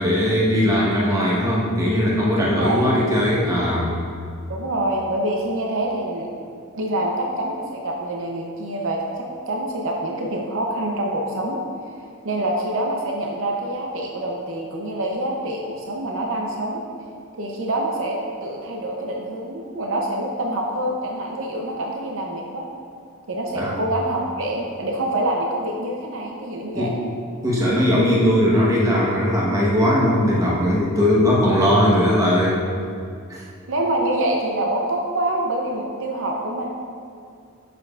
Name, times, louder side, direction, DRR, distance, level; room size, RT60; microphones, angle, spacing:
voice 1, 0.0-3.9 23.6-23.8 26.7-26.9 27.4-32.6 33.3-33.4, equal, 15° right, -5 dB, 1.1 m, -19 dB
voice 2, 2.5-2.9 4.5-6.3 6.7-16.8 17.4-22.6 23.3-27.0 33.7-36.7, right 1 dB, 60° right, 0 dB, 0.6 m, -26 dB
7.5 x 6.8 x 2.4 m, 2.4 s
head